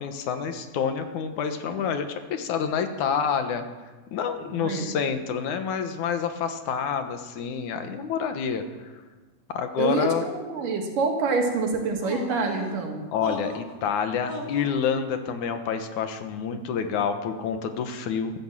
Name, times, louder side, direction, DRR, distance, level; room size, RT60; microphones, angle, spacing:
voice 1, 0.0-3.6 4.1-8.9 9.5-10.2 13.1-18.3, left 7 dB, 70° left, 8 dB, 2.5 m, -28 dB
voice 2, 4.4-5.0 9.8-13.0, right 4 dB, 85° right, 2 dB, 3.7 m, -27 dB
sound 1, 12.0-12.7 13.2-13.7 14.3-14.7, left 2 dB, 35° left, 1.9 m, -35 dB
14.0 x 12.0 x 7.5 m, 1.3 s
omnidirectional pair, 3.7 m